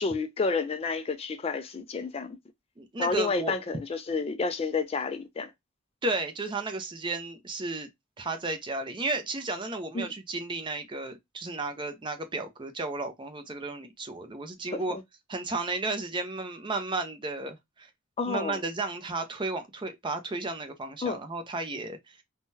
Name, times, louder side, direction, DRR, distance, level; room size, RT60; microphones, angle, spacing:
voice 1, 0.0-2.4 3.0-5.5 9.9-10.1 14.7-15.0 18.2-18.6 21.0-21.2, left 4 dB, 30° left, 0.3 m, -30 dB
voice 2, 2.8-3.5 6.0-7.9 8.2-15.0 15.3-17.9 18.3-22.2, right 3 dB, 25° right, 0.5 m, -33 dB
3.5 x 2.2 x 2.6 m
head